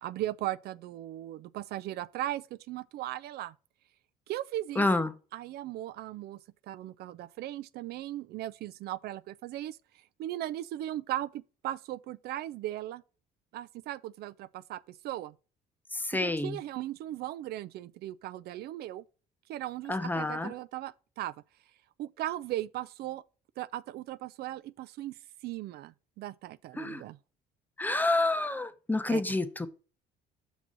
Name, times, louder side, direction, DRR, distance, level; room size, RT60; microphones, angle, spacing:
voice 1, 0.0-3.5 4.3-4.9 5.3-13.0 13.5-15.3 16.1-19.0 19.5-21.3 22.0-23.2 23.6-25.2 25.4-27.2 29.1-29.2, right 14 dB, 70° right, 0.4 m, -38 dB
voice 2, 4.8-5.2 15.9-16.6 19.9-20.5 26.8-27.0 27.8-29.7, left 2 dB, 10° left, 0.8 m, -28 dB
6.1 x 4.1 x 5.9 m
cardioid pair, 110°, 17 cm